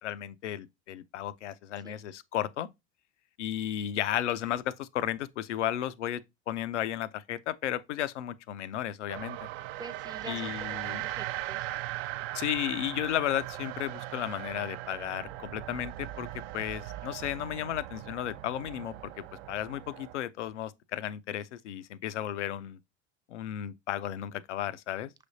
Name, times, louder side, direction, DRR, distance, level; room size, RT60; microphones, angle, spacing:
voice 1, 0.0-2.7 3.4-9.4 10.3-11.1 12.3-16.3 16.5-22.8 23.3-25.1, left 11 dB, 85° left, 0.5 m, -34 dB
sound 1, 9.1-20.1, right 16 dB, 60° right, 0.5 m, -39 dB
voice 2, 9.8-11.7, right 3 dB, 10° right, 0.5 m, -45 dB
6.0 x 3.3 x 2.6 m
hypercardioid pair, 80°, 34 cm